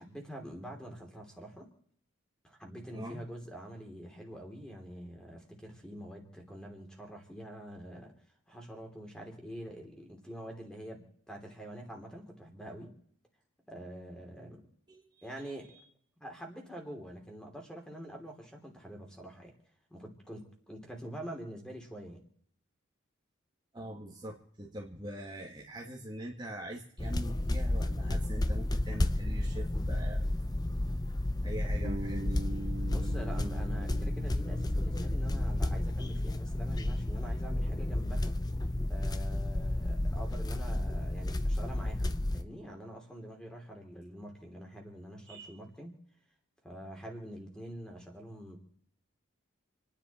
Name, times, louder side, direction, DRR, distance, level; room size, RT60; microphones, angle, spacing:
voice 1, 0.0-1.7 2.4-8.1 8.5-12.9 13.7-14.6 15.2-15.7 16.2-19.5 19.9-22.2 32.8-38.4 38.9-45.9 46.6-48.6, equal, 5° left, 2 dB, 3.1 m, -46 dB
voice 2, 2.9-3.2 14.9-15.3 23.7-30.4 31.4-32.4 45.3-45.5, right 1 dB, 20° right, -2 dB, 1.8 m, -43 dB
sound 1, 27.0-42.4, left 1 dB, 20° left, 0.7 m, -32 dB
Bass guitar, 31.8-35.9, right 2 dB, 55° right, 0.7 m, -43 dB
29.0 x 10.0 x 4.4 m, 0.65 s
head